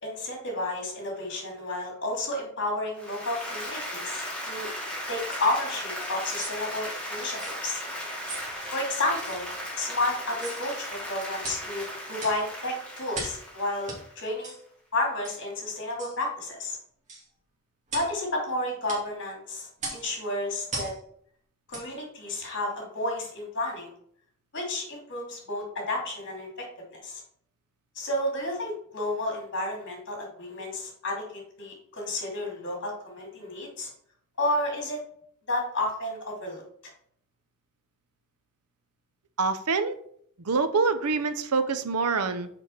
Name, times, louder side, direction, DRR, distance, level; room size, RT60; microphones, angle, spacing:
voice 1, 0.0-4.7 5.1-7.8 8.7-9.5 9.8-14.5 14.9-16.8 17.9-20.9 21.7-23.9 24.5-26.6 26.9-27.2 27.9-33.9 34.4-35.0 35.5-36.6, left 1 dB, 55° left, 0 dB, 2.8 m, -31 dB
Applause, 3.0-14.3, equal, 5° left, 2.3 m, -36 dB
sound 1, 5.3-5.5 6.1-6.6 7.3-7.6 8.2-8.5 9.2-9.4 10.3-10.6 11.4-11.7 12.2-12.4 13.1-13.4 13.9-14.0 14.4-14.6 15.2-15.4 16.0-16.2 17.1-17.3 17.9-18.1 18.9-19.0 19.8-20.1 20.7-21.0 21.7-21.9 22.4-22.5, right 3 dB, 35° right, 2.5 m, -38 dB
voice 2, 39.4-40.0 40.4-42.5, right 4 dB, 85° right, 11 dB, 0.7 m, -26 dB
6.8 x 4.9 x 5.7 m, 0.66 s
head